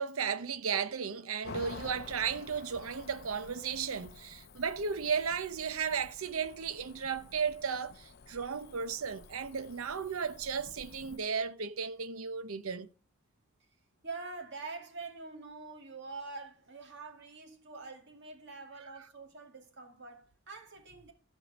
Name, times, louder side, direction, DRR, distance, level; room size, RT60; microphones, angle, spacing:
voice 1, 0.0-12.9, right 6 dB, 85° right, 0.8 m, -35 dB
Cricket / Motor vehicle (road), 1.4-11.2, left 4 dB, 50° left, 0.6 m, -51 dB
voice 2, 14.0-21.1, right 3 dB, 55° right, 2.3 m, -45 dB
14.0 x 5.7 x 5.0 m
head